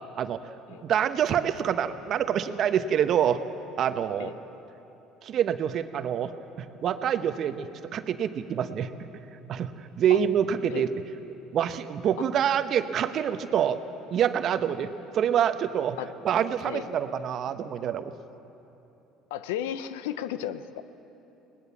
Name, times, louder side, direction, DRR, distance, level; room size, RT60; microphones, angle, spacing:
voice 1, 0.2-3.4 3.8-4.3 5.2-8.9 9.5-10.9 11.5-13.8 14.1-16.0 16.2-18.1, right 9 dB, 55° right, 10 dB, 1.0 m, -26 dB
voice 2, 19.3-20.8, left 10 dB, 85° left, 14 dB, 0.7 m, -34 dB
21.5 x 19.0 x 7.2 m, 3.0 s
hypercardioid pair, 75°, 0 cm